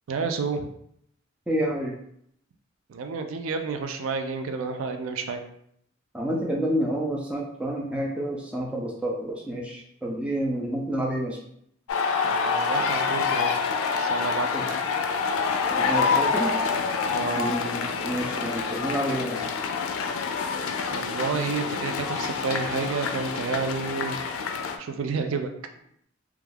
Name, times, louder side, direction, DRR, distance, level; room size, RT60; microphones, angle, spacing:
voice 1, 0.1-0.7 2.9-5.4 12.2-13.5 14.0-14.5 17.1-17.4 20.9-24.2 24.8-25.5, right 4 dB, 80° right, 5 dB, 0.3 m, -30 dB
voice 2, 1.5-2.0 6.1-11.4 14.5-14.6 15.7-16.6 17.4-19.5, right 1 dB, 5° right, -2 dB, 0.3 m, -29 dB
sound 1, 11.9-24.8, left 5 dB, 90° left, 0.3 m, -27 dB
2.3 x 2.2 x 3.2 m, 0.71 s
head